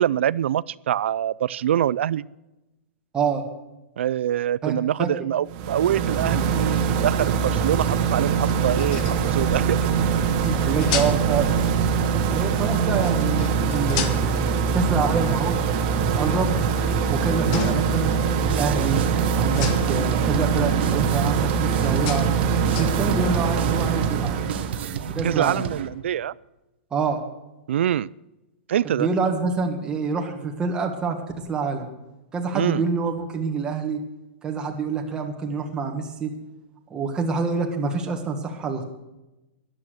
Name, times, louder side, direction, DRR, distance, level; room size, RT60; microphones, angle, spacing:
voice 1, 0.0-2.2 4.0-9.8 25.2-26.3 27.7-28.1 28.7-29.1 32.5-32.8, right 11 dB, 80° right, 21 dB, 0.4 m, -24 dB
voice 2, 3.1-3.4 4.6-4.7 5.0-5.1 10.4-11.6 12.3-14.3 14.7-15.5 15.8-16.5 17.1-19.0 19.4-22.3 22.8-24.4 25.1-25.7 26.9-27.2 29.0-31.2 31.5-31.9 32.3-34.0 34.4-36.3 36.9-38.8, right 4 dB, 10° right, 2 dB, 1.6 m, -26 dB
sound 1, 5.5-24.9, right 6 dB, 35° right, 1.4 m, -23 dB
sound 2, 8.5-9.4 10.4-11.4 13.0-14.6 16.0-17.1 17.5-18.1 18.9-19.2 19.5-20.1 21.1-23.0, left 8 dB, 40° left, 1.4 m, -33 dB
sound 3, 18.5-25.9, right 8 dB, 60° right, 1.1 m, -32 dB
13.5 x 11.0 x 6.4 m, 0.99 s
hypercardioid pair, 160°, 6 cm